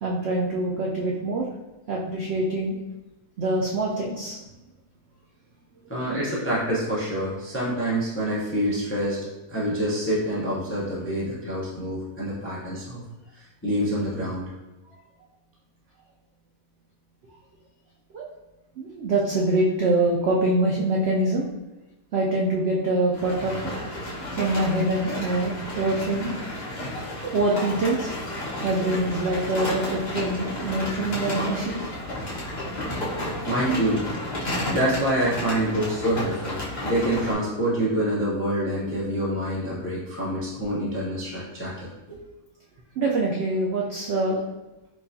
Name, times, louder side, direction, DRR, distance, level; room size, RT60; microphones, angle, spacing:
voice 1, 0.0-1.5 1.9-2.8 3.4-4.4 18.1-18.3 18.8-21.5 22.1-23.7 24.4-26.3 27.3-28.1 28.6-31.8 43.0-44.4, right 2 dB, 75° right, -3 dB, 0.6 m, -24 dB
voice 2, 5.9-9.2 9.5-13.0 13.6-14.5 33.4-34.0 34.5-42.2, right 1 dB, 20° left, -7 dB, 0.3 m, -26 dB
sound 1, 23.1-37.3, left 1 dB, 35° left, 0.8 m, -32 dB
4.7 x 2.4 x 2.6 m, 1.0 s
omnidirectional pair, 1.6 m